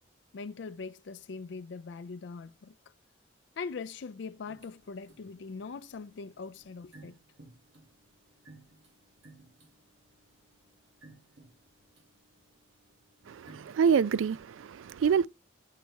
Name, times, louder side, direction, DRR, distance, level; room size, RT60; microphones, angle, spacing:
voice 1, 0.3-2.7 3.6-7.2, left 4 dB, 65° left, 0.4 m, -41 dB
sound 1, 4.4-14.4, right 2 dB, 70° right, 2.0 m, -59 dB
voice 2, 13.3-15.3, right 6 dB, 85° right, 0.3 m, -26 dB
8.3 x 3.4 x 6.2 m
head